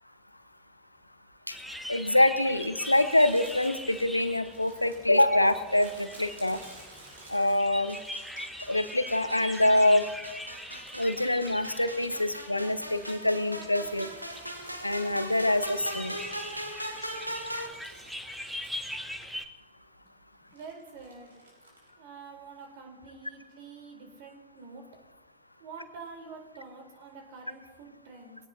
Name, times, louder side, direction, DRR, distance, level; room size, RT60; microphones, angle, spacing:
sound 1, 1.5-19.5, equal, ahead, 1.2 m, -42 dB
voice 1, 1.9-6.6 7.3-8.0 8.7-10.0 10.9-14.1 14.8-16.2, left 1 dB, 85° left, 12 dB, 0.9 m, -25 dB
Crumpling crinkling, 2.8-8.5 9.0-11.2 11.4-16.5 16.9-19.3 19.6-19.7 20.5-21.9, right 2 dB, 70° right, 5.9 m, -54 dB
sound 2, 7.9-17.7, equal, 90° right, 1.3 m, -40 dB
voice 2, 20.5-21.4 22.0-24.8 25.6-28.4, right 4 dB, 50° right, 3 dB, 3.9 m, -47 dB
22.5 x 17.5 x 2.8 m, 1.2 s
figure-of-eight pair, 90°, 0 cm